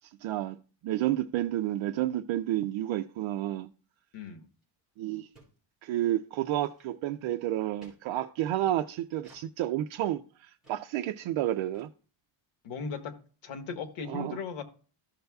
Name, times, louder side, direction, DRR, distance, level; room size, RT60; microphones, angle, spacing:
voice 1, 0.2-0.6 0.8-3.7 5.0-5.3 5.8-11.9 14.1-14.4, right 13 dB, 85° right, 0.5 m, -30 dB
voice 2, 4.1-4.5 12.6-13.2 13.4-14.6, left 5 dB, 90° left, 1.4 m, -37 dB
sound 1, 4.6-4.7 4.9-5.0 5.3-5.6 5.9-6.1 6.5-7.2 7.8-8.0 9.2-9.5 10.0-10.1 10.6-10.8 11.1-11.2 11.4-11.5 11.7-11.9, right 2 dB, ahead, 4.7 m, -57 dB
14.5 x 6.6 x 2.3 m
cardioid pair, 165°, 46 cm